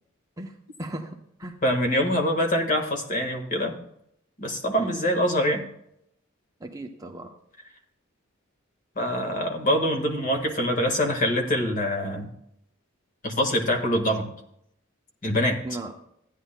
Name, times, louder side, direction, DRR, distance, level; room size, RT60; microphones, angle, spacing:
voice 1, 0.4-1.6 4.8-5.0 6.6-7.3 15.6-15.9, right 1 dB, 15° right, 2 dB, 0.6 m, -37 dB
voice 2, 1.6-3.7 4.4-5.6 8.9-12.3 13.2-14.3 15.2-15.6, equal, 40° left, 3 dB, 1.6 m, -24 dB
15.5 x 10.0 x 2.2 m, 0.74 s
head